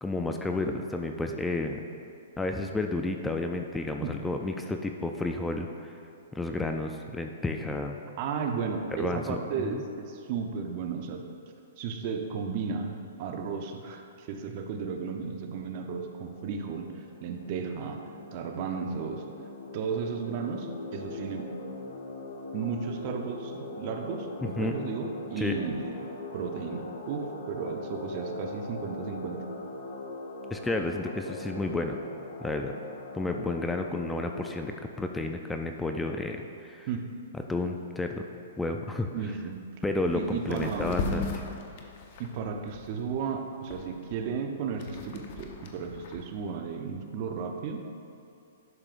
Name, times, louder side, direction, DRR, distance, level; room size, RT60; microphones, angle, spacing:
voice 1, 0.0-1.8 2.4-5.9 6.3-8.0 9.0-9.4 9.7-9.8 24.6-24.7 25.4-25.6 30.5-32.0 32.4-32.7 33.1-36.9 37.5-38.3 38.6-39.1 39.8-41.3, left 2 dB, 5° left, 4 dB, 0.4 m, -31 dB
voice 2, 8.2-11.3 11.8-19.2 19.7-21.6 22.5-26.0 26.3-29.4 36.9-37.1 39.1-39.6 40.1-41.0 42.2-47.9, right 5 dB, 45° right, 4 dB, 0.7 m, -34 dB
sound 1, 16.1-34.5, left 2 dB, 75° left, 1.2 m, -41 dB
sound 2, 39.5-39.6 40.0-40.2 40.5-43.2 43.7-46.2, left 3 dB, 50° left, 0.9 m, -36 dB
11.0 x 6.6 x 2.5 m, 2.7 s
hypercardioid pair, 135°, 0 cm